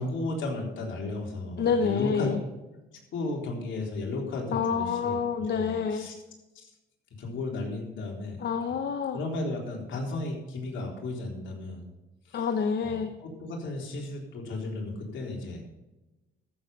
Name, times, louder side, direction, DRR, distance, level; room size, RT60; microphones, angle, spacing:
voice 1, 0.0-2.3 3.1-5.2 5.5-6.1 6.6-6.7 7.2-8.4 9.1-11.8 12.3-12.4 12.8-15.6, left 2 dB, 75° left, -1 dB, 3.8 m, -34 dB
voice 2, 1.6-2.4 4.5-6.1 8.4-9.2 12.3-13.1, left 6 dB, 55° left, 7 dB, 1.0 m, -27 dB
14.0 x 7.6 x 5.6 m, 1.0 s
cardioid pair, 90°, 20 cm